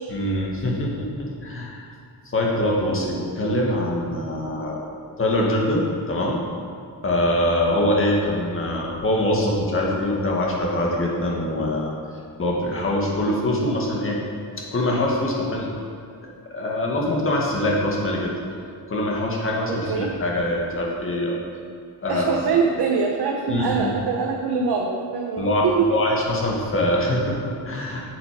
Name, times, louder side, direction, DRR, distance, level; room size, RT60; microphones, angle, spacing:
voice 1, 0.1-1.9 2.3-4.8 5.2-6.4 7.0-11.9 12.4-14.2 14.6-15.7 16.5-18.4 18.9-21.4 22.0-22.4 23.5-24.0 25.4-28.0, left 1 dB, 30° left, -2 dB, 1.8 m, -23 dB
voice 2, 19.7-20.1 22.1-26.0, right 5 dB, 70° right, -1 dB, 1.0 m, -23 dB
8.4 x 7.6 x 5.1 m, 2.3 s
wide cardioid pair, 145°, 40 cm